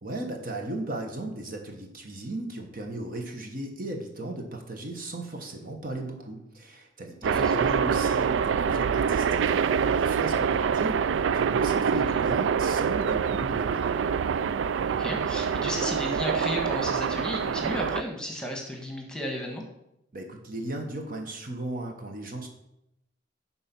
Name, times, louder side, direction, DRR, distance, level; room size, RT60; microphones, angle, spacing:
voice 1, 0.0-9.5 9.8-11.0 11.3-14.0 20.1-22.5, right 1 dB, 45° right, 2 dB, 1.3 m, -36 dB
voice 2, 7.2-7.5 15.0-19.6, equal, 5° left, 1 dB, 1.4 m, -33 dB
sound 1, 7.2-18.0, right 6 dB, 75° right, 0.3 m, -25 dB
11.0 x 4.2 x 6.0 m, 0.83 s
head